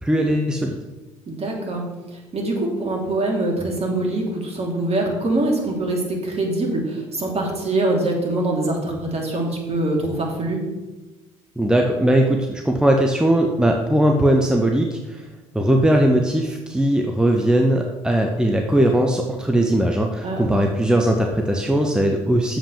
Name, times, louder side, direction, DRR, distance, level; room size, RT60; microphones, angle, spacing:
voice 1, 0.0-0.8 11.6-15.2 15.5-22.6, right 1 dB, 5° right, 2 dB, 1.0 m, -19 dB
voice 2, 1.3-1.8 2.3-10.6 20.2-20.5, right 2 dB, 40° right, -1 dB, 3.0 m, -24 dB
7.4 x 5.3 x 6.9 m, 1.1 s
hypercardioid pair, 50°, 17 cm